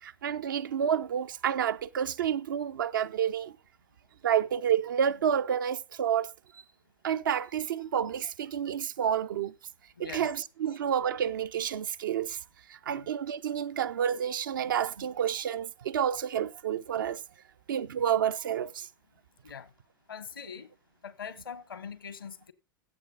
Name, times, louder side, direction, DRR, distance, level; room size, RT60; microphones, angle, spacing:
voice 1, 0.0-3.6 4.2-6.6 7.0-9.6 10.0-12.4 12.7-17.2 17.7-18.9, right 9 dB, 70° right, 0.7 m, -29 dB
voice 2, 10.0-10.3 12.9-13.1 19.4-19.7 20.1-20.7 21.0-22.5, left 6 dB, 80° left, 1.3 m, -42 dB
16.0 x 7.0 x 3.9 m
figure-of-eight pair, 90°, 11 cm